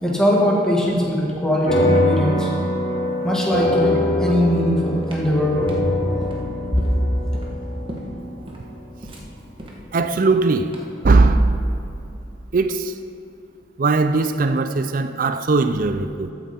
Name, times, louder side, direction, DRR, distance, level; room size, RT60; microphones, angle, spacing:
voice 1, 0.0-2.5 3.2-5.6, equal, 5° left, 1.9 m, -20 dB
sound 1, 1.7-10.4, left 1 dB, 50° left, 3.1 m, -24 dB
sound 2, 5.0-11.1, equal, 30° right, 1.3 m, -39 dB
voice 2, 9.9-10.7 11.0-11.6 12.5-12.9 13.8-16.3, right 3 dB, 45° right, 0.4 m, -19 dB
14.0 x 8.8 x 4.4 m
head